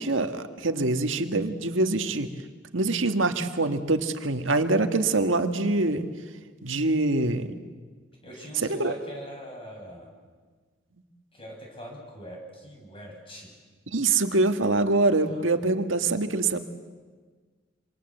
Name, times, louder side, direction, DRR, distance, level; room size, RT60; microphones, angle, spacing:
voice 1, 0.0-2.3 2.7-6.1 6.6-7.5 8.7-8.9 13.9-16.6, right 2 dB, 90° right, 7 dB, 1.7 m, -24 dB
voice 2, 8.2-10.1 11.3-13.5 15.3-15.5, equal, 30° left, 0 dB, 8.0 m, -42 dB
26.5 x 26.0 x 7.9 m, 1.5 s
head